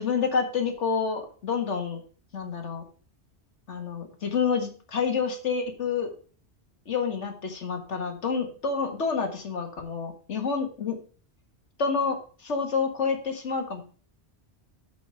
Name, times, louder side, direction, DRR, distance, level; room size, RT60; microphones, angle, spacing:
voice 1, 0.0-2.0 2.3-2.8 3.7-6.1 6.9-11.0 11.8-13.8, left 5 dB, 85° left, 5 dB, 1.9 m, -28 dB
8.2 x 5.2 x 6.8 m, 0.40 s
omnidirectional pair, 1.2 m